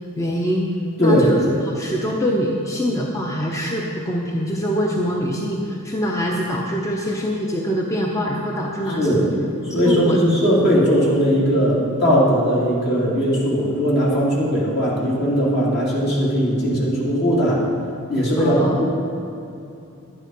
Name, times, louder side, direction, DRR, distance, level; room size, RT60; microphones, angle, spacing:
voice 1, 0.2-0.7 1.0-9.3 9.8-10.2 18.4-18.8, equal, 15° left, -1 dB, 0.7 m, -24 dB
voice 2, 8.9-9.3 9.7-17.6 18.1-18.8, equal, 55° left, -5 dB, 2.9 m, -19 dB
11.5 x 9.6 x 5.5 m, 2.7 s
head